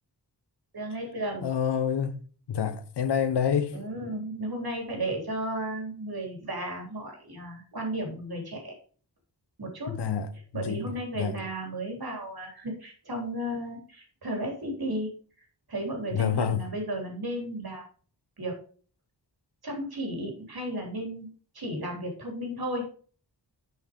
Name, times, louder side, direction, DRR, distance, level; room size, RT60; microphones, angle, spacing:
voice 1, 0.7-1.5 3.7-8.8 9.6-9.9 10.5-15.1 15.7-17.8 18.4-18.6 19.6-21.3 21.5-22.8, right 1 dB, 65° right, 3.6 m, -34 dB
voice 2, 1.4-2.2 2.5-3.7 9.9-10.8 11.2-11.4 16.1-16.7, left 7 dB, 90° left, 0.9 m, -27 dB
7.6 x 5.6 x 5.2 m
wide cardioid pair, 80°, 39 cm